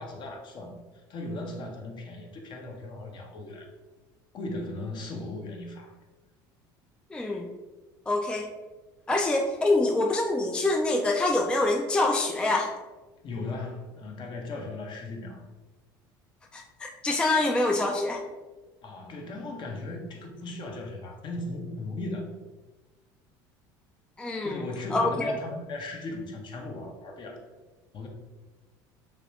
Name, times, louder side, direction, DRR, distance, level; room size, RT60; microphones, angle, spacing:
voice 1, 0.0-3.7 4.3-5.9 13.2-15.5 18.8-22.3 24.4-27.4 27.9-28.1, left 2 dB, 45° left, 2 dB, 0.7 m, -37 dB
voice 2, 7.1-7.5 8.1-8.5 9.1-12.7 16.5-18.2 24.2-24.6 24.9-25.4, left 2 dB, 10° left, 2 dB, 0.3 m, -25 dB
3.0 x 2.9 x 3.0 m, 1.2 s
supercardioid pair, 85°, 11 cm